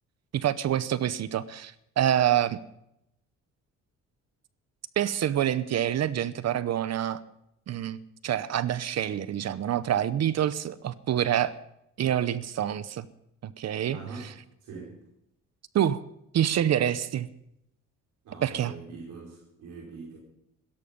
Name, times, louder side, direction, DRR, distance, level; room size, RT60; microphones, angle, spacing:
voice 1, 0.3-2.6 5.0-7.2 7.7-11.6 12.0-13.1 13.4-14.3 15.7-16.0 16.3-17.3 18.4-18.7, right 10 dB, 60° right, 16 dB, 0.8 m, -27 dB
voice 2, 13.9-14.3 14.6-15.0 18.2-20.2, right 4 dB, 80° right, -3 dB, 5.2 m, -42 dB
16.5 x 14.0 x 5.4 m, 0.80 s
cardioid pair, 90°, 30 cm